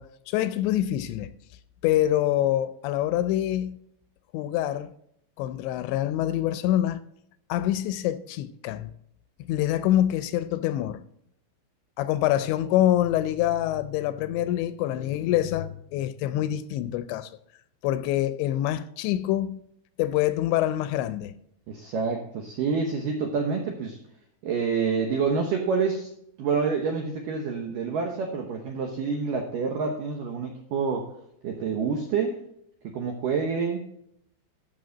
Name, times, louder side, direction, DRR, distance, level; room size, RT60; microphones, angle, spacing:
voice 1, 0.0-1.3 1.8-3.8 4.3-4.9 5.4-7.0 7.5-8.9 9.4-11.0 12.0-17.3 17.8-19.6 20.0-21.4, left 13 dB, 85° left, 2.7 m, -25 dB
voice 2, 21.7-24.0 24.4-26.1 26.4-31.1 31.4-32.4 32.8-33.9, right 5 dB, 80° right, 1.9 m, -27 dB
14.0 x 6.2 x 3.9 m
omnidirectional pair, 5.3 m